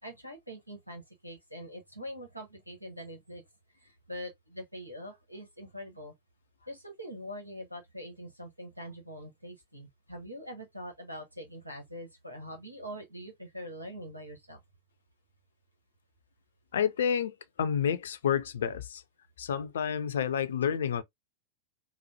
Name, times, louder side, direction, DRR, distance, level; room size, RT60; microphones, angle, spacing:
voice 1, 0.0-3.4 3.7-6.1 6.6-14.6, equal, 90° right, 1.2 m, -43 dB
voice 2, 16.7-19.0 19.4-21.0, left 8 dB, 65° left, 0.4 m, -29 dB
4.2 x 2.1 x 2.8 m
figure-of-eight pair, 90°, 0 cm